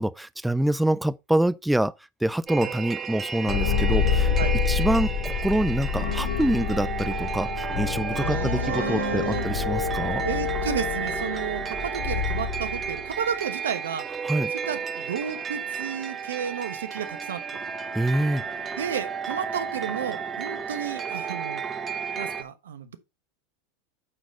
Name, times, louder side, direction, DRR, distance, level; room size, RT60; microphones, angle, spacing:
voice 1, 0.0-1.9 2.2-4.3 4.7-10.2 14.2-14.5 17.9-18.4, right 1 dB, 5° right, 0.4 m, -26 dB
sound 1, 2.5-22.4, right 6 dB, 25° right, 1.2 m, -33 dB
sound 2, 3.4-13.1, left 7 dB, 60° left, 2.5 m, -28 dB
voice 2, 8.1-9.5 10.2-14.1 14.5-17.4 18.8-21.6 22.2-23.0, right 8 dB, 85° right, 1.1 m, -32 dB
8.9 x 4.1 x 5.1 m
hypercardioid pair, 100°, 0 cm